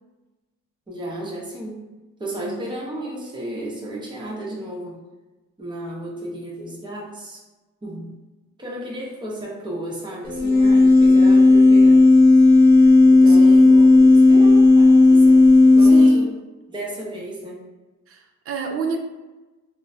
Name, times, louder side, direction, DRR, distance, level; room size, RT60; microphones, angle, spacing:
voice 1, 0.9-1.9 2.2-5.0 5.6-7.4 7.8-8.2 8.6-12.0 13.0-16.3 16.7-17.6, right 1 dB, 15° right, -4 dB, 0.8 m, -33 dB
voice 2, 2.3-2.6 12.8-12.9 13.3-13.8 15.8-16.3 18.1-19.0, right 5 dB, 50° right, 3 dB, 0.5 m, -30 dB
sound 1, 10.2-16.1, left 2 dB, 70° left, 0.6 m, -12 dB
3.0 x 2.0 x 2.7 m, 1.1 s
cardioid pair, 90°, 30 cm